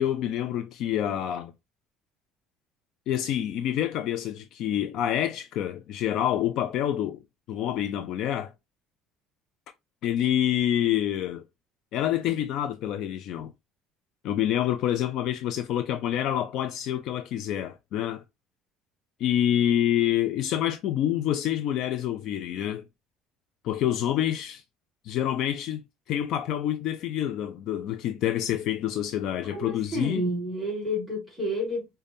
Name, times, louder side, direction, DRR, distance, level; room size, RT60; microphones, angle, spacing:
voice 1, 0.0-1.5 3.1-7.2 7.5-8.5 10.0-11.4 11.9-13.5 14.2-18.2 19.2-22.8 23.6-24.6 25.0-25.8 26.1-30.2, left 11 dB, 50° left, 0.3 m, -27 dB
voice 2, 29.5-31.9, equal, 5° left, 1.9 m, -30 dB
5.1 x 2.2 x 2.6 m
cardioid pair, 175°, 0 cm